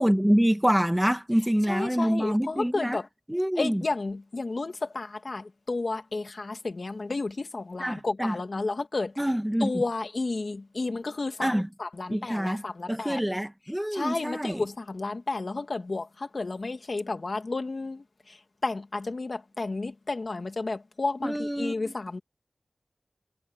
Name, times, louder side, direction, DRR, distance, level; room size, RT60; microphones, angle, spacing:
voice 1, 0.0-3.0 3.3-3.8 7.8-8.4 9.2-9.8 11.4-11.7 12.1-12.6 12.9-14.7 21.2-21.9, equal, 10° right, 1.7 m, -26 dB
voice 2, 1.7-3.1 3.6-9.1 9.6-11.5 11.8-13.2 13.9-18.4 18.6-22.2, left 3 dB, 70° left, 2.3 m, -32 dB
wide cardioid pair, 45°, 0 cm